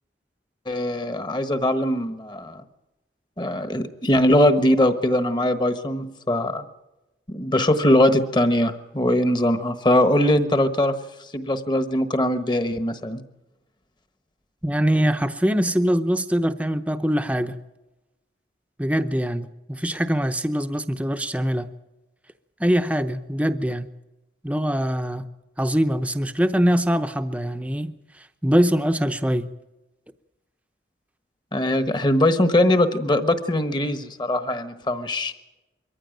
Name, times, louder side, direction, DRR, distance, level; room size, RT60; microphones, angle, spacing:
voice 1, 0.7-2.6 3.4-6.6 7.3-10.9 11.3-13.2 31.5-35.3, left 1 dB, 25° left, 10 dB, 1.2 m, -21 dB
voice 2, 14.6-17.6 18.8-21.7 22.6-23.9 24.4-25.3 25.6-27.9 28.4-29.5, equal, 5° right, 9 dB, 0.8 m, -23 dB
23.0 x 15.0 x 9.1 m, 1.0 s
head